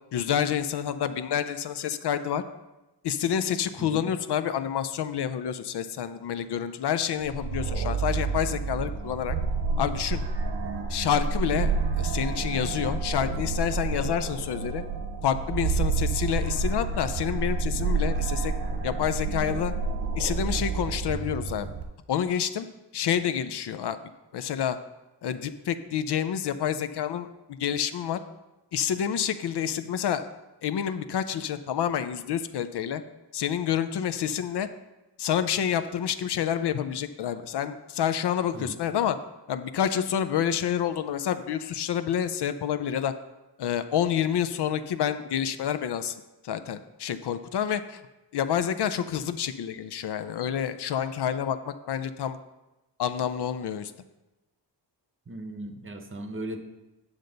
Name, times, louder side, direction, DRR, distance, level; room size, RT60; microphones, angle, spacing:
voice 1, 0.1-2.4 3.0-9.4 9.8-10.2 10.9-11.7 12.0-14.8 15.2-18.5 18.8-19.7 20.2-21.7 22.1-22.7 22.9-24.0 24.3-24.8 25.2-28.2 28.7-30.3 30.6-33.0 33.3-34.7 35.2-39.2 39.5-43.1 43.6-48.0 48.3-52.4 53.0-53.9, left 9 dB, 65° left, 11 dB, 0.5 m, -28 dB
voice 2, 3.8-4.1 38.5-38.8 55.3-56.6, right 1 dB, 30° right, 6 dB, 0.8 m, -37 dB
sound 1, 7.2-21.8, right 4 dB, 75° right, 1.1 m, -29 dB
8.7 x 6.5 x 3.9 m, 1.0 s
wide cardioid pair, 120°, 43 cm